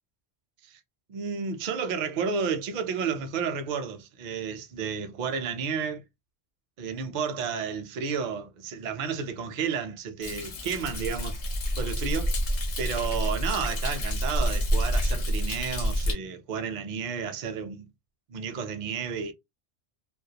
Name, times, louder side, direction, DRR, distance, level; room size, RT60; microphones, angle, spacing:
voice 1, 1.1-6.0 6.8-11.4 11.8-12.4 12.8-17.9 18.3-19.3, right 6 dB, 55° right, 0.5 m, -32 dB
Thunder, 10.2-16.1, equal, 50° left, 0.4 m, -28 dB
2.2 x 2.1 x 2.7 m
omnidirectional pair, 1.1 m